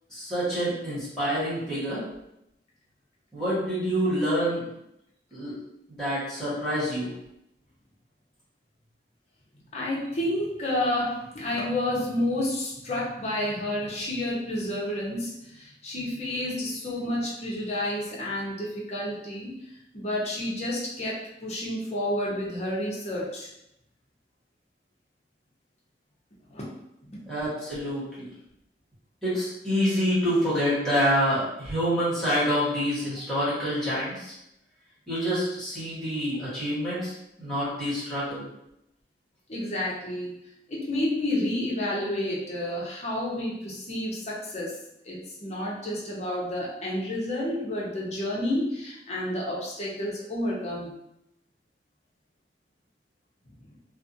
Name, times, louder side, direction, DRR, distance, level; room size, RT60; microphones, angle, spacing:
voice 1, 0.1-2.0 3.3-4.6 5.3-5.5 5.9-7.1 27.3-28.3 29.2-34.3 35.1-37.1 37.4-38.5, equal, 5° left, -12 dB, 1.3 m, -27 dB
voice 2, 9.7-19.5 19.9-23.5 26.5-26.6 27.1-27.2 39.5-40.4 40.7-44.7 45.0-50.9, left 1 dB, 35° left, -5 dB, 0.7 m, -30 dB
2.4 x 2.4 x 2.6 m, 0.83 s
head